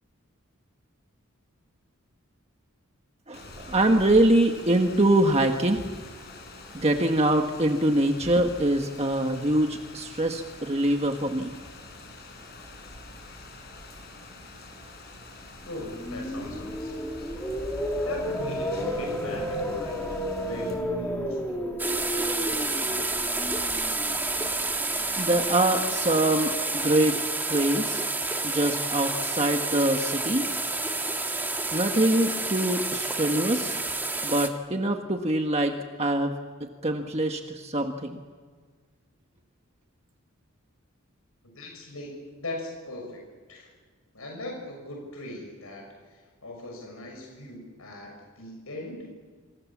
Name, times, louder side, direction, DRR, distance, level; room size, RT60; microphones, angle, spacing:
Rain, 3.3-20.7, left 2 dB, 50° left, 5.9 m, -45 dB
voice 1, 3.3-5.8 6.7-11.5 25.2-27.2 27.5-28.0 28.4-30.5 31.7-33.8 34.2-36.3 36.8-38.2, right 1 dB, 30° right, 4 dB, 1.4 m, -24 dB
sound 1, 15.6-25.8, equal, 10° left, 3.0 m, -32 dB
voice 2, 15.7-17.0 18.0-21.8 41.5-43.2 43.5-43.7 44.1-49.1, left 1 dB, 85° left, 1 dB, 6.3 m, -39 dB
sound 2, 21.8-34.5, right 3 dB, 10° right, 1.7 m, -29 dB
28.0 x 27.0 x 7.4 m, 1.5 s
head